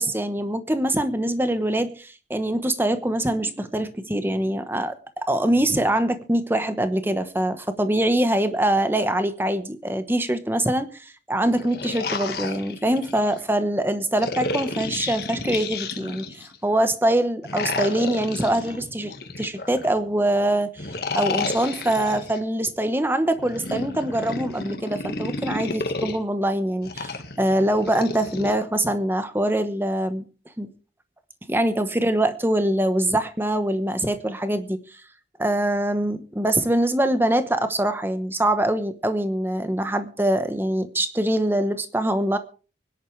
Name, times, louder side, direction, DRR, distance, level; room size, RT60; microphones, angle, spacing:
voice 1, 0.0-20.9 21.2-30.2 30.6-30.7 31.5-35.0 35.4-42.4, right 1 dB, 10° right, 10 dB, 1.0 m, -24 dB
sound 1, 11.4-13.4 14.2-16.6 17.4-20.0 20.8-22.4 23.4-26.2 26.8-28.5, left 3 dB, 60° left, 1.6 m, -31 dB
24.5 x 10.5 x 3.3 m, 0.36 s
head